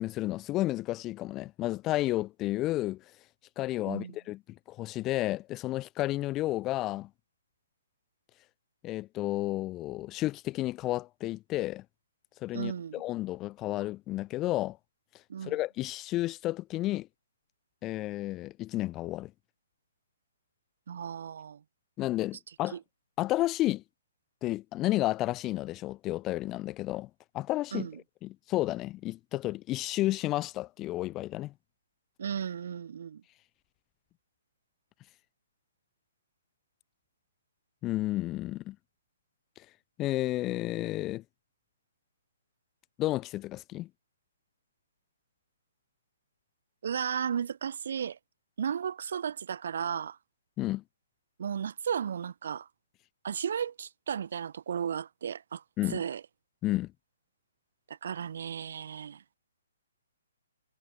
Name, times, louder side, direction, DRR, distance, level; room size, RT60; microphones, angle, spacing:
voice 1, 0.0-3.0 3.6-4.4 4.7-7.1 8.8-11.8 12.4-14.8 15.4-17.1 17.8-19.3 22.0-22.8 23.2-23.8 24.4-27.1 27.3-27.9 28.2-31.5 37.8-38.8 40.0-41.2 43.0-43.9 50.6-50.8 55.8-56.0 56.6-56.9, left 16 dB, 20° left, 0.8 m, -31 dB
voice 2, 12.5-13.0 15.3-15.5 20.9-21.6 22.7-22.8 27.7-28.0 32.2-33.2 46.8-48.2 48.6-50.2 51.4-52.7 53.2-56.2 57.9-59.2, right 8 dB, 55° right, 1.4 m, -34 dB
figure-of-eight pair, 125°, 0 cm